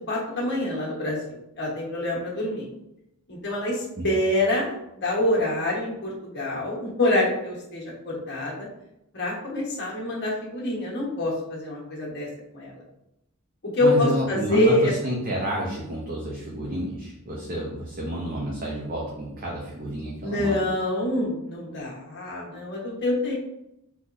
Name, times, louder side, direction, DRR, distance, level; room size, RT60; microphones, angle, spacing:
voice 1, 0.1-2.7 3.3-8.7 9.1-12.3 12.5-12.8 13.7-14.9 20.2-23.3, left 1 dB, 55° left, -4 dB, 1.2 m, -26 dB
voice 2, 13.8-20.6, right 1 dB, 40° right, -4 dB, 0.6 m, -30 dB
3.8 x 3.0 x 2.6 m, 0.86 s
head